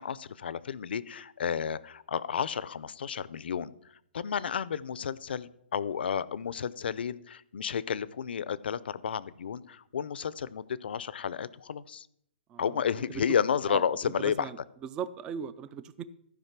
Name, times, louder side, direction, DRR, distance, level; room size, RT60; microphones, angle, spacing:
voice 1, 0.0-3.7 4.1-12.1 12.6-14.5, left 7 dB, 65° left, 18 dB, 0.6 m, -32 dB
voice 2, 12.5-13.0 13.7-14.6 14.9-16.0, right 7 dB, 15° right, 16 dB, 0.3 m, -39 dB
14.5 x 5.1 x 5.9 m, 0.73 s
hypercardioid pair, 165°, 6 cm